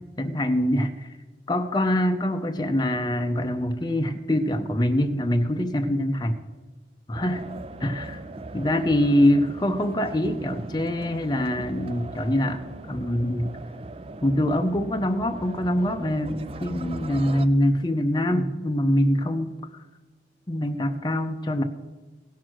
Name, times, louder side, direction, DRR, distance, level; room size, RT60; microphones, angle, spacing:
voice 1, 0.2-1.1 1.5-6.4 7.1-7.5 7.8-8.2 8.5-13.6 14.2-19.8 20.5-21.6, left 1 dB, 25° left, 6 dB, 0.6 m, -24 dB
sound 1, 7.1-17.5, right 2 dB, 30° right, 0.4 m, -39 dB
16.5 x 6.3 x 6.1 m, 1.3 s
head